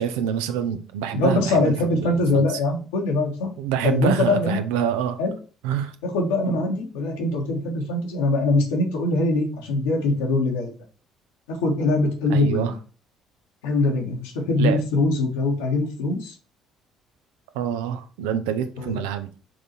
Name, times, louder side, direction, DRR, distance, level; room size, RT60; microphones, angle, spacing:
voice 1, 0.0-2.5 3.6-5.2 5.6-5.9 12.3-12.7 14.6-14.8 17.5-19.3, right 9 dB, 70° right, 0.7 m, -26 dB
voice 2, 1.1-3.5 3.8-4.6 5.2-5.3 6.0-10.7 11.5-12.7 13.6-16.3 18.8-19.0, left 2 dB, 70° left, 1.6 m, -22 dB
6.2 x 3.8 x 4.4 m
figure-of-eight pair, 50°, 0 cm